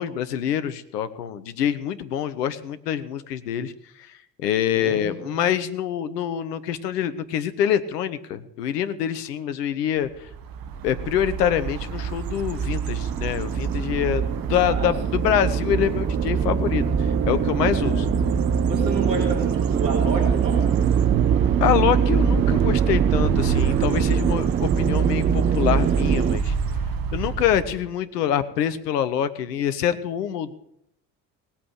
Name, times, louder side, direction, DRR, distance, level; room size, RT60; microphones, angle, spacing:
voice 1, 0.0-3.7 4.0-10.3 10.8-14.2 14.5-18.1 21.6-26.5 27.1-30.5, left 9 dB, 70° left, 12 dB, 1.2 m, -25 dB
voice 2, 4.7-5.4 14.6-15.3 17.6-18.0 18.7-20.7, right 2 dB, 80° right, 0 dB, 4.2 m, -30 dB
sound 1, 10.3-27.9, right 5 dB, 45° right, 1.5 m, -25 dB
sound 2, 12.5-26.4, right 9 dB, 20° right, 0.4 m, -25 dB
18.5 x 8.7 x 6.6 m, 0.75 s
figure-of-eight pair, 55°, 49 cm